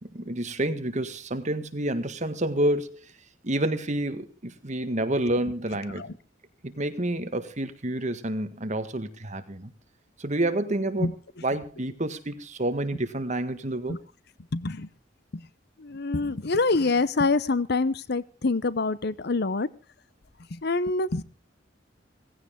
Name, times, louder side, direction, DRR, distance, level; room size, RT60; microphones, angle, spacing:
voice 1, 0.1-3.0 3.4-6.1 6.6-9.7 10.2-11.1 11.4-14.0, right 1 dB, 40° right, 1.7 m, -29 dB
voice 2, 14.5-14.9 15.8-19.7 20.6-21.2, left 3 dB, 60° left, 0.8 m, -25 dB
17.5 x 16.0 x 3.7 m
head